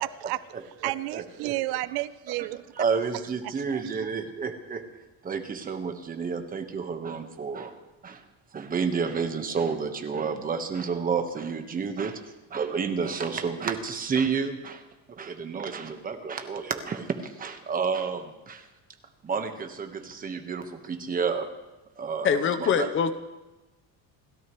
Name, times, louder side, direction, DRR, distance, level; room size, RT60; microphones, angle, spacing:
voice 1, 0.0-0.4 0.8-2.8 3.1-4.1, right 18 dB, 85° right, 16 dB, 0.7 m, -32 dB
voice 2, 0.5-1.5 2.7-4.8 5.2-7.7 8.0-8.2 8.5-12.2 12.5-14.8 15.1-18.7 19.2-21.5 22.0-22.9, right 5 dB, 25° right, 6 dB, 1.3 m, -30 dB
voice 3, 22.2-23.1, left 7 dB, 35° left, 11 dB, 0.8 m, -23 dB
29.5 x 13.5 x 3.1 m, 1.1 s
cardioid pair, 165°, 37 cm